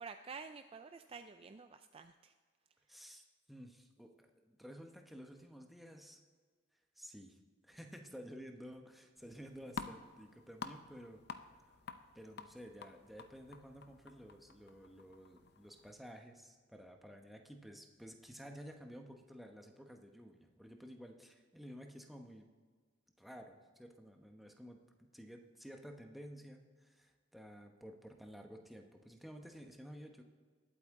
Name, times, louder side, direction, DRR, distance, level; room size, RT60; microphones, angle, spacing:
voice 1, 0.0-2.3, right 5 dB, 30° right, 8 dB, 0.3 m, -50 dB
voice 2, 2.9-6.2 7.0-7.4 7.6-11.2 11.7-11.8 12.1-22.5 23.2-30.2, equal, ahead, 3 dB, 0.9 m, -53 dB
sound 1, 9.2-15.9, left 5 dB, 55° left, 0.6 m, -50 dB
20.0 x 8.4 x 3.7 m, 1.5 s
head